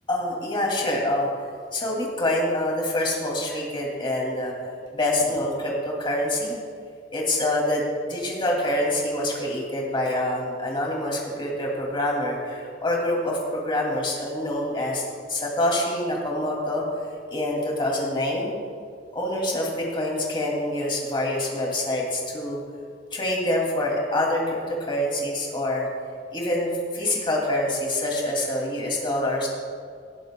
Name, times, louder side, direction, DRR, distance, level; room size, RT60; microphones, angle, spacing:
voice 1, 0.1-1.3 1.7-4.5 4.9-6.5 7.1-15.0 15.3-16.8 17.3-18.5 19.1-22.6 23.1-25.9 26.3-29.5, left 1 dB, 30° left, -2 dB, 2.5 m, -26 dB
19.0 x 11.5 x 2.3 m, 2.1 s
head